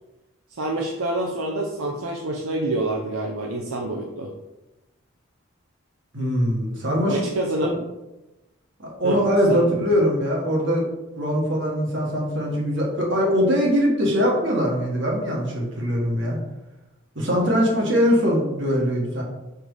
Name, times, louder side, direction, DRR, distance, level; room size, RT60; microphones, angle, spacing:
voice 1, 0.5-4.3 7.1-7.8 9.0-9.2 9.5-9.7, right 2 dB, 75° right, 1 dB, 0.7 m, -27 dB
voice 2, 6.1-7.2 7.6-7.7 8.8-10.8 11.2-16.4 17.1-19.2, equal, 60° right, -2 dB, 1.7 m, -22 dB
5.2 x 4.5 x 4.8 m, 1.0 s
head